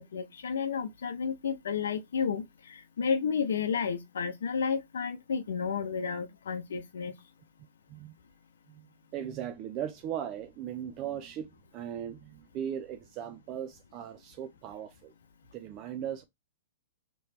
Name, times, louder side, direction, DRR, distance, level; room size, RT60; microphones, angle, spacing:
voice 1, 0.0-7.1, left 6 dB, 75° left, 0.6 m, -32 dB
voice 2, 9.1-15.1 15.5-16.2, right 9 dB, 35° right, 0.4 m, -38 dB
3.2 x 3.0 x 4.3 m
hypercardioid pair, 125°, 0 cm